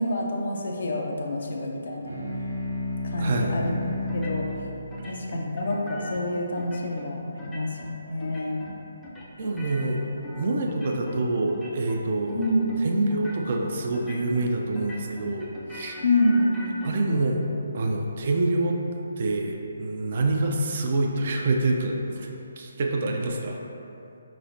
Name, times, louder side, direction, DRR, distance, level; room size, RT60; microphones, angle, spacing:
voice 1, 0.0-2.2 3.0-3.9 4.1-4.5 5.1-8.6 12.3-12.7 16.0-16.7, left 1 dB, 55° left, 0 dB, 0.5 m, -27 dB
sound 1, 2.0-6.9, left 1 dB, 80° right, 0.9 m, -33 dB
voice 2, 3.2-3.6 9.4-10.0 10.4-16.0 16.8-17.4 17.7-18.8 19.2-23.6, right 2 dB, 45° right, 1 dB, 0.4 m, -26 dB
sound 2, 4.1-4.6 4.9-6.2 6.6-7.1 7.4-7.9 8.2-8.8 9.0-11.2 11.5-12.0 12.3-12.8 13.1-13.6 13.9-14.5 14.7-16.9, left 1 dB, 5° left, 0.5 m, -41 dB
4.6 x 3.1 x 2.6 m, 2.8 s
figure-of-eight pair, 140°, 0 cm